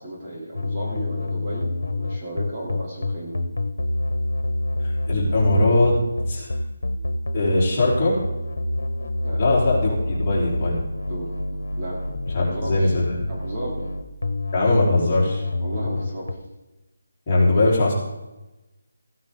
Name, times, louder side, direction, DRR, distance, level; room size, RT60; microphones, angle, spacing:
voice 1, 0.0-3.4 9.2-9.4 11.1-12.0 12.4-12.9 13.3-13.9 15.6-16.3, right 1 dB, 25° right, -5 dB, 3.3 m, -34 dB
sound 1, 0.5-16.3, left 1 dB, 90° left, 1.1 m, -27 dB
voice 2, 4.8-6.0 6.3-6.5 7.3-8.2 9.4-10.8 12.3-13.1 14.5-15.4 17.3-17.9, left 2 dB, 25° left, -7 dB, 4.0 m, -20 dB
15.5 x 9.4 x 3.9 m, 1.0 s
figure-of-eight pair, 170°, 0 cm